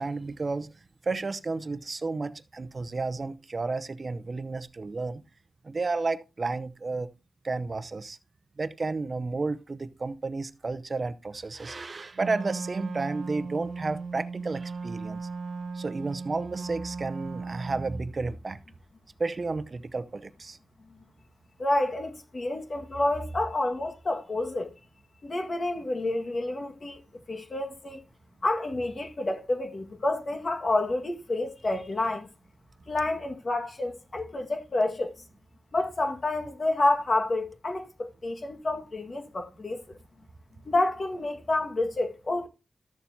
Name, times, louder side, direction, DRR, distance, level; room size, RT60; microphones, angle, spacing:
voice 1, 0.0-5.2 5.6-7.1 7.4-8.2 8.6-15.3 15.7-18.6 19.2-20.6, right 3 dB, 45° right, 0.7 m, -32 dB
Wind instrument woodwind instrument, 12.1-18.1, right 4 dB, 75° right, 0.7 m, -37 dB
voice 2, 21.6-24.7 25.2-27.0 27.3-28.0 28.4-32.3 32.9-35.1 35.7-40.0 40.6-42.5, left 2 dB, 45° left, 1.7 m, -29 dB
13.0 x 7.0 x 2.8 m
cardioid pair, 70°, 0 cm